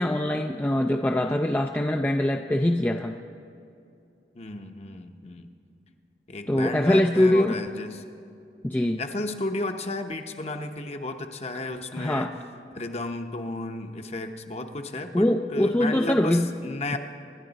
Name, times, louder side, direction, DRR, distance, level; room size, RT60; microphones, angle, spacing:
voice 1, 0.0-3.2 6.5-7.5 8.6-9.0 12.0-12.3 15.1-16.5, left 1 dB, 10° left, 4 dB, 0.3 m, -23 dB
voice 2, 4.3-5.5 6.3-8.0 8.8-12.3 12.7-17.0, left 2 dB, 35° left, 6 dB, 0.8 m, -33 dB
26.0 x 11.0 x 4.0 m, 2.5 s
head